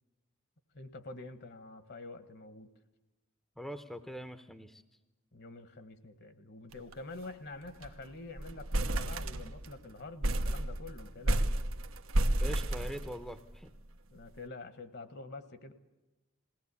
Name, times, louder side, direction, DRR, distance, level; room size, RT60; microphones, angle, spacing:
voice 1, 0.7-2.7 5.3-11.7 14.1-15.7, left 2 dB, 55° left, 12 dB, 1.3 m, -47 dB
voice 2, 3.6-4.8 12.4-13.7, equal, ahead, 10 dB, 0.7 m, -43 dB
sound 1, 6.7-6.9 7.2-7.3 7.6-8.0 8.4-9.8 10.2-13.5, right 1 dB, 85° right, 1.1 m, -31 dB
21.0 x 18.0 x 8.3 m, 1.0 s
head